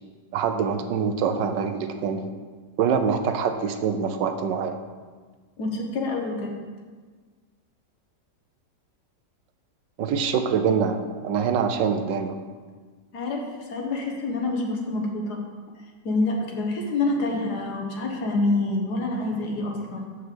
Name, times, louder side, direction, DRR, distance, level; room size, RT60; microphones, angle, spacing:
voice 1, 0.3-2.3 2.8-4.8 10.0-12.4, right 6 dB, 80° right, 7 dB, 1.4 m, -25 dB
voice 2, 5.6-6.5 13.1-15.4 16.1-20.1, left 2 dB, 65° left, 1 dB, 1.8 m, -27 dB
6.6 x 5.7 x 6.9 m, 1.5 s
omnidirectional pair, 1.9 m